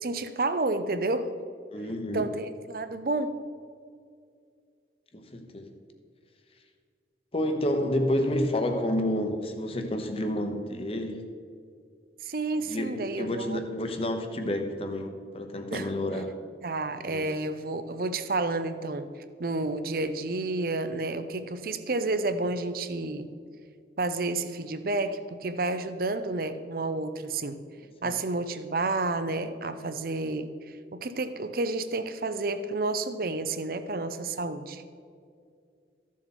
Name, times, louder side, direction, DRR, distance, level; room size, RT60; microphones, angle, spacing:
voice 1, 0.0-1.3 2.1-3.4 12.2-13.6 15.7-15.9 16.6-19.1 19.4-23.3 24.0-27.6 28.0-34.8, right 2 dB, 55° right, 10 dB, 0.7 m, -30 dB
voice 2, 1.7-2.3 5.1-5.7 7.3-11.2 12.7-16.3 17.1-17.3 28.0-28.1, left 1 dB, 35° left, 6 dB, 1.0 m, -29 dB
14.0 x 7.3 x 4.3 m, 2.3 s
head